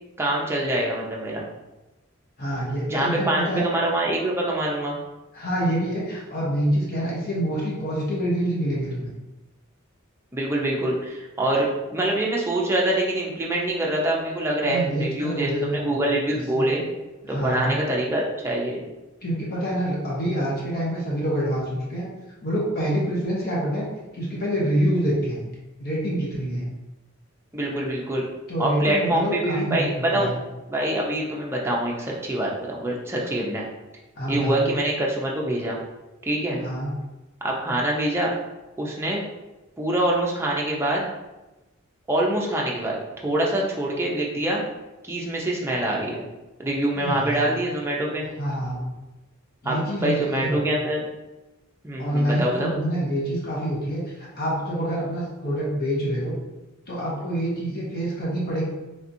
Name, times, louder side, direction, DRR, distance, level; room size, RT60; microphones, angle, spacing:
voice 1, 0.2-1.4 2.9-5.0 10.3-16.8 17.3-18.8 27.5-28.3 28.6-30.4 30.7-33.7 34.3-35.8 36.2-36.6 37.4-38.3 38.8-39.2 39.8-41.0 42.1-44.6 45.0-46.2 46.6-48.3 49.6-51.0 51.8-52.7, right 1 dB, 10° right, -3 dB, 0.5 m, -25 dB
voice 2, 2.4-3.7 5.3-9.1 14.6-16.0 16.5-16.7 17.2-17.7 19.2-22.1 22.4-23.9 24.1-25.5 25.8-26.7 28.5-30.4 34.2-34.6 36.6-36.9 46.9-47.5 48.4-48.9 49.6-50.6 52.0-56.4 56.9-58.6, right 1 dB, 50° left, -5 dB, 0.9 m, -26 dB
3.4 x 2.9 x 2.6 m, 1.0 s
head